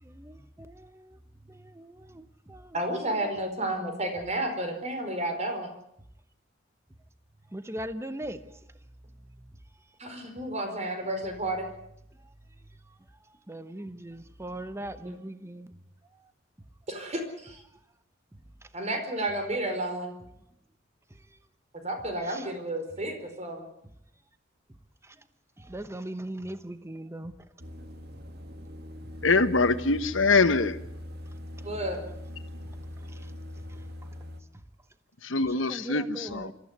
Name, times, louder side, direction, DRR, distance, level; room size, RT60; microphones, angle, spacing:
voice 1, 0.0-1.2 1.5-3.3 7.5-8.4 13.5-15.7 22.3-22.4 25.0-25.2 25.6-27.3 31.6-31.7 33.1-33.3 33.7-33.8 35.7-36.5, right 1 dB, 15° right, 0.9 m, -40 dB
voice 2, 2.7-5.7 10.0-11.7 15.0-15.2 16.9-17.6 18.7-20.1 21.8-23.7 31.6-32.0, right 1 dB, 35° right, 4.7 m, -31 dB
sound 1, 27.6-34.4, left 1 dB, 55° right, 1.8 m, -42 dB
voice 3, 29.2-30.8 35.2-36.5, left 3 dB, 85° left, 1.4 m, -24 dB
26.0 x 14.5 x 9.5 m
head